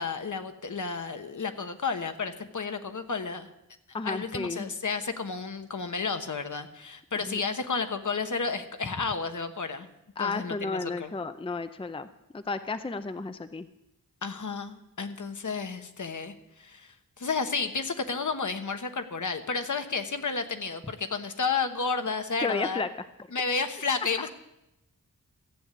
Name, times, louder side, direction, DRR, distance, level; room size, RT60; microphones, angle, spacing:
voice 1, 0.0-3.5 4.0-9.9 10.2-11.1 14.2-22.8 23.3-24.3, left 4 dB, 60° left, 8 dB, 1.2 m, -32 dB
voice 2, 3.9-4.7 7.3-7.4 10.2-12.1 12.3-13.7 22.4-22.9, left 3 dB, 15° left, 11 dB, 0.5 m, -32 dB
14.0 x 7.8 x 8.4 m, 0.89 s
wide cardioid pair, 95°, 34 cm